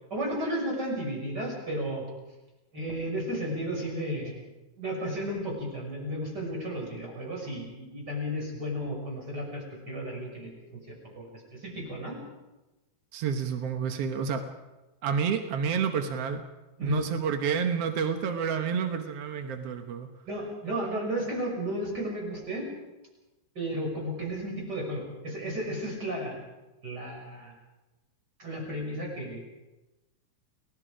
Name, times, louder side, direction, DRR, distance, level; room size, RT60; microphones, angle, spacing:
voice 1, 0.1-2.1 2.7-4.3 4.8-10.8 11.1-12.2 16.8-17.0 20.3-22.7 23.5-26.5 26.8-27.5 28.4-29.5, equal, 25° right, -1 dB, 6.7 m, -33 dB
voice 2, 13.1-14.4 15.0-16.4 16.8-20.1, right 6 dB, 75° right, 6 dB, 1.4 m, -29 dB
29.5 x 18.5 x 5.1 m, 1.1 s
omnidirectional pair, 4.4 m